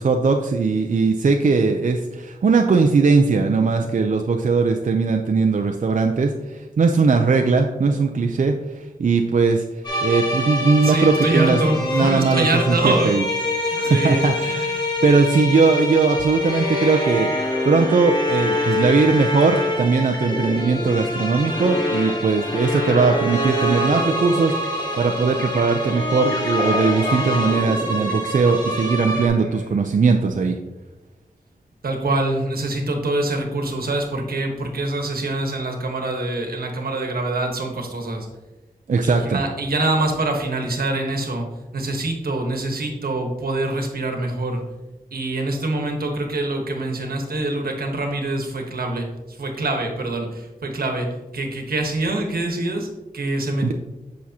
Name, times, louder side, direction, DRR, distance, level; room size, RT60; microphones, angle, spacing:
voice 1, 0.0-9.6 10.0-11.6 11.8-13.2 13.7-17.3 17.6-30.6 38.9-39.4 53.6-53.7, right 4 dB, 60° right, 4 dB, 0.5 m, -19 dB
sound 1, 9.8-29.3, left 1 dB, 30° left, 2.0 m, -25 dB
voice 2, 10.8-13.1 13.8-14.3 31.8-38.3 39.0-41.5 41.7-44.6 45.1-49.1 49.4-52.9 53.1-53.7, right 2 dB, 85° right, 3 dB, 1.3 m, -24 dB
sound 2, 19.4-29.8, equal, 10° left, 2.3 m, -33 dB
8.2 x 6.2 x 2.9 m, 1.1 s
wide cardioid pair, 60°, 15 cm